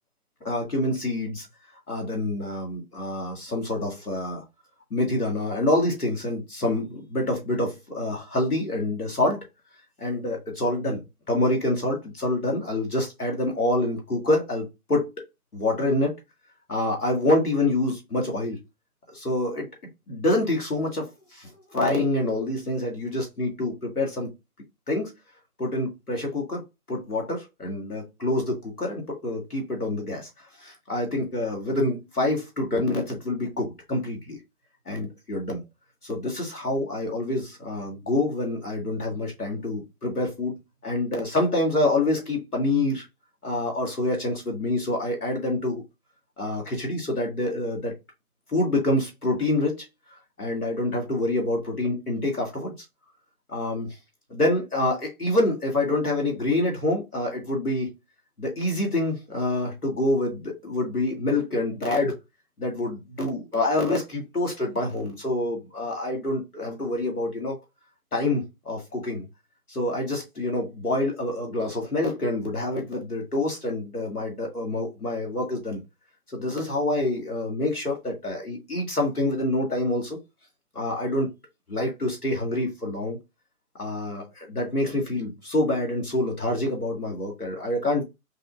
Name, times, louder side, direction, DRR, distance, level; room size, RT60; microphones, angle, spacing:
voice 1, 0.4-1.5 1.9-4.4 4.9-9.4 10.0-11.0 11.3-15.1 15.5-16.1 16.7-18.6 19.1-19.7 20.1-24.3 24.9-25.1 25.6-26.6 26.9-30.3 30.6-34.4 34.9-35.6 36.0-40.5 40.8-43.0 43.4-45.8 46.4-47.9 48.5-49.9 50.4-52.7 53.5-54.0 54.3-57.9 58.4-62.1 62.6-67.6 68.1-69.3 69.7-75.8 76.3-80.2 80.7-81.3 81.7-83.2 83.8-88.0, left 2 dB, 80° left, 2.0 m, -26 dB
5.4 x 2.3 x 2.5 m
figure-of-eight pair, 140°, 45 cm